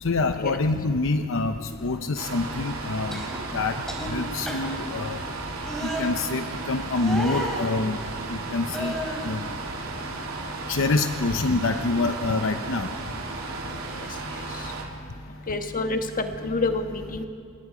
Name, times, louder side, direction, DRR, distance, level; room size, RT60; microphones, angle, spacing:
voice 1, 0.0-3.3 3.5-3.8 4.1-5.2 5.8-8.0 8.3-8.9 9.2-9.4 10.7-12.9, left 3 dB, 65° left, 7 dB, 0.8 m, -26 dB
sound 1, 2.2-14.9, right 3 dB, 80° right, 2.9 m, -35 dB
sound 2, 3.1-3.4 3.9-4.1 4.5-4.8 5.6-6.1 7.0-7.7 8.7-9.3 9.8-10.6 10.9-11.2 11.6-12.4 13.7-13.9, equal, 5° left, 4.1 m, -34 dB
voice 2, 15.5-17.3, left 3 dB, 40° left, 6 dB, 1.3 m, -27 dB
27.5 x 20.0 x 5.0 m, 2.4 s
head